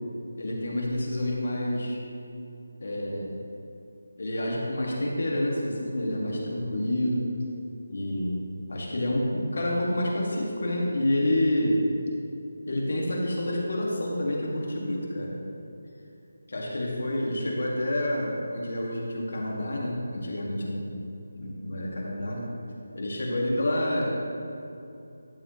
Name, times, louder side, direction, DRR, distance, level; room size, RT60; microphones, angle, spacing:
voice 1, 0.4-2.0 2.8-3.4 4.2-7.3 7.9-8.4 8.7-11.8 12.7-15.4 16.5-21.0 21.4-22.5 22.9-24.1, left 1 dB, 65° left, -2 dB, 2.0 m, -28 dB
11.5 x 7.0 x 3.1 m, 2.7 s
figure-of-eight pair, 165°, 0 cm